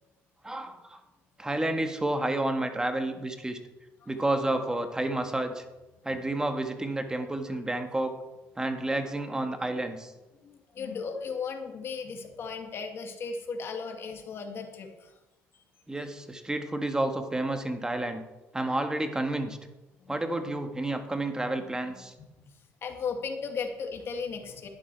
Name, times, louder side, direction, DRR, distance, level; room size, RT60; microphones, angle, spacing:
voice 1, 0.4-1.0 1.4-3.6 4.1-5.6 6.0-8.1 8.6-10.1 15.9-18.2 18.5-19.6 20.1-22.1, right 1 dB, 15° right, 6 dB, 1.7 m, -30 dB
voice 2, 10.4-15.2 20.0-20.2 22.5-24.7, left 5 dB, 50° left, 4 dB, 2.2 m, -36 dB
11.5 x 10.0 x 4.7 m, 1.0 s
supercardioid pair, 85°, 5 cm